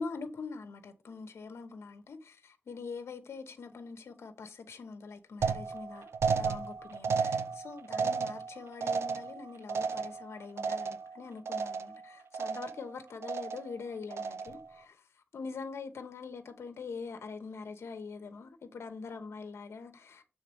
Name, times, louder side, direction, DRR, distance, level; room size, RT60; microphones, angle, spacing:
voice 1, 0.0-20.2, left 4 dB, 85° left, 0.9 m, -44 dB
sound 1, 5.4-11.2 11.5-12.0 12.3-12.9 13.2-13.7 14.1-14.7, right 5 dB, 85° right, 0.5 m, -33 dB
6.6 x 3.8 x 6.3 m
cardioid pair, 45°, 4 cm